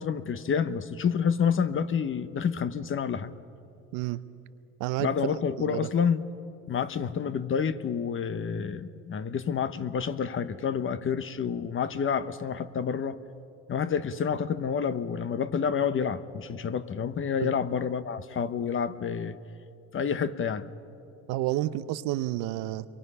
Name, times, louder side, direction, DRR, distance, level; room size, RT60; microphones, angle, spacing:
voice 1, 0.0-3.3 5.0-6.2 6.7-13.2 13.7-19.4 19.9-20.7, left 7 dB, 40° left, 12 dB, 1.1 m, -29 dB
voice 2, 4.8-5.1 5.6-5.9 17.4-17.5 21.3-22.9, right 16 dB, 80° right, 13 dB, 0.8 m, -30 dB
29.0 x 23.5 x 5.6 m, 2.7 s
supercardioid pair, 90°, 33 cm